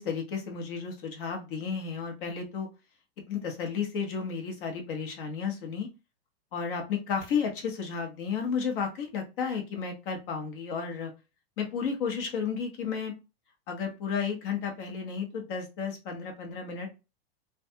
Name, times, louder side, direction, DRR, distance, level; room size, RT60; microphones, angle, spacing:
voice 1, 0.0-2.7 3.3-5.9 6.5-11.1 11.6-13.1 13.7-16.9, left 6 dB, 60° left, 3 dB, 1.1 m, -32 dB
2.5 x 2.3 x 2.6 m, 0.28 s
hypercardioid pair, 130°, 30 cm